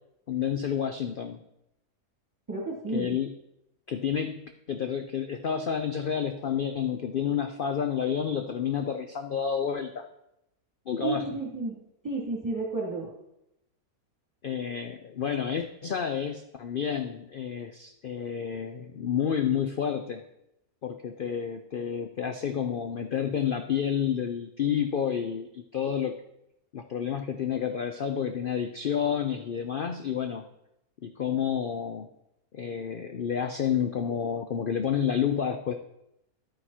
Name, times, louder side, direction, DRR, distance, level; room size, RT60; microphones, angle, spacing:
voice 1, 0.3-1.4 2.9-3.3 3.9-10.1 10.9-11.2 14.4-20.2 20.8-26.2 26.7-30.5 31.0-32.1 32.5-35.7, left 8 dB, 85° left, 8 dB, 0.4 m, -30 dB
voice 2, 2.5-3.2 11.0-11.7 12.0-13.1, right 3 dB, 10° right, -3 dB, 2.9 m, -31 dB
11.0 x 9.0 x 4.3 m, 0.84 s
omnidirectional pair, 1.7 m